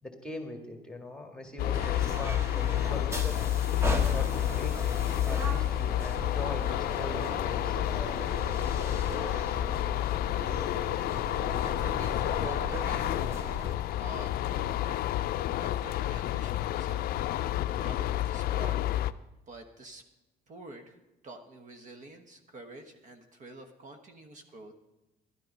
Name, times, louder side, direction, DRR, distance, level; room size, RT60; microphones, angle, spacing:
voice 1, 0.0-3.5 4.1-7.8, left 2 dB, 5° left, 4 dB, 1.7 m, -42 dB
sound 1, 1.6-19.1, left 13 dB, 65° left, 0.4 m, -30 dB
sound 2, 1.7-13.8, equal, 15° right, 1.3 m, -37 dB
voice 2, 11.6-13.2 13.5-13.6 14.0-18.8 19.5-20.0 20.5-21.0 21.2-24.7, right 2 dB, 50° right, 6 dB, 1.2 m, -47 dB
11.5 x 10.5 x 5.3 m, 0.99 s
cardioid pair, 110°, 17 cm